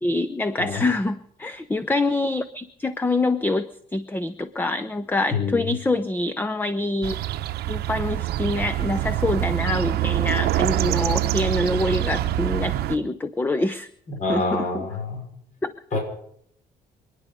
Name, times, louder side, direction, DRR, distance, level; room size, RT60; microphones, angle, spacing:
voice 1, 0.0-7.2 7.7-13.9 14.3-14.9 15.6-15.7, left 2 dB, 10° left, 13 dB, 0.7 m, -25 dB
voice 2, 5.3-5.7 14.1-15.3 15.9-16.0, left 3 dB, 45° left, 2 dB, 5.3 m, -26 dB
sound 1, 7.0-13.0, right 15 dB, 70° right, 0.8 m, -25 dB
26.5 x 9.9 x 5.2 m, 0.68 s
cardioid pair, 110°, 17 cm